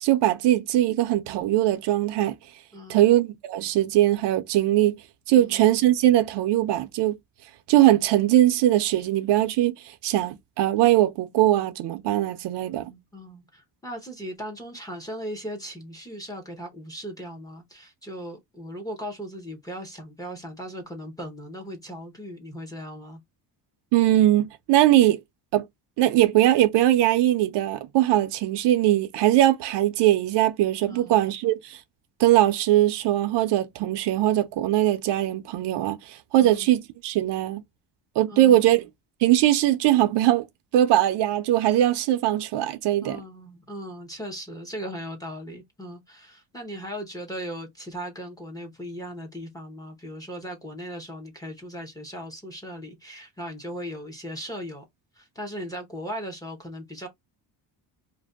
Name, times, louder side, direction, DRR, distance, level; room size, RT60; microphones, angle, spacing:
voice 1, 0.0-2.4 2.9-5.0 5.3-7.2 7.7-12.9 23.9-25.2 25.5-25.6 26.0-31.8 32.2-37.6 38.2-38.9 39.2-40.5 40.7-43.2, right 14 dB, 70° right, 0.6 m, -21 dB
voice 2, 2.7-3.1 5.3-5.6 12.7-23.2 30.9-31.3 36.4-36.7 38.3-38.8 43.0-54.8 55.2-57.1, equal, 10° left, 0.6 m, -38 dB
2.6 x 2.1 x 3.4 m
cardioid pair, 180°, 44 cm